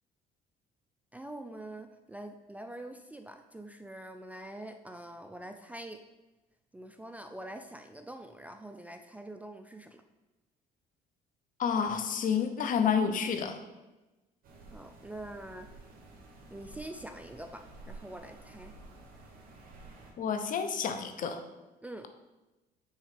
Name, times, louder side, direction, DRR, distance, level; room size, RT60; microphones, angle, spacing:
voice 1, 1.1-6.0 6.7-10.0 14.7-15.7 16.5-18.7 21.8-22.1, right 1 dB, 10° right, 6 dB, 0.4 m, -45 dB
voice 2, 11.6-13.6 20.2-21.4, left 7 dB, 50° left, 7 dB, 0.7 m, -29 dB
sound 1, 14.4-20.1, right 2 dB, 60° right, 1.5 m, -51 dB
6.4 x 3.9 x 5.0 m, 1.1 s
cardioid pair, 110°, 17 cm